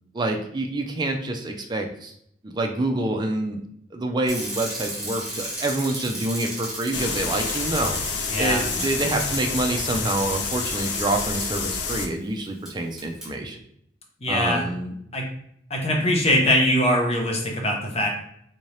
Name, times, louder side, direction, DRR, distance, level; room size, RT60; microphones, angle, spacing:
voice 1, 0.1-2.1 2.4-3.6 3.9-8.0 8.4-13.6 14.3-14.9, right 2 dB, 25° right, 3 dB, 0.4 m, -27 dB
Bicycle, 4.3-11.9 12.7-12.8 13.0-13.3, right 1 dB, 5° right, 1.2 m, -34 dB
sound 1, 6.9-12.1, left 5 dB, 70° left, 0.5 m, -29 dB
voice 2, 8.3-8.6 14.2-14.7 15.1-15.3 15.7-18.1, left 1 dB, 35° left, 0 dB, 0.8 m, -22 dB
3.6 x 2.7 x 3.2 m, 0.70 s
head